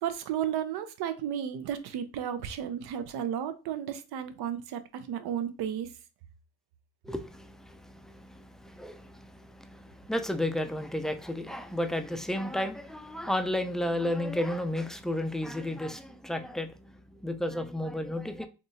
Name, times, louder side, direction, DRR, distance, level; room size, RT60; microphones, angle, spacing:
voice 1, 0.0-5.9, right 9 dB, 75° right, 0.6 m, -33 dB
voice 2, 7.1-16.7 17.2-18.5, left 1 dB, ahead, 0.3 m, -32 dB
3.5 x 2.6 x 2.7 m
supercardioid pair, 70°, 38 cm